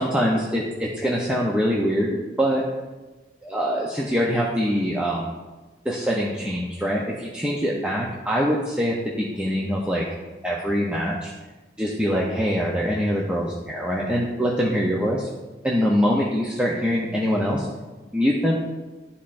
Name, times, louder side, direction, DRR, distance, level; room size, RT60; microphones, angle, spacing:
voice 1, 0.0-2.6 3.4-5.3 5.8-10.0 10.4-11.3 11.8-15.2 15.6-17.7 18.1-18.6, equal, 5° right, -4 dB, 0.6 m, -24 dB
12.5 x 4.2 x 2.5 m, 1.2 s
head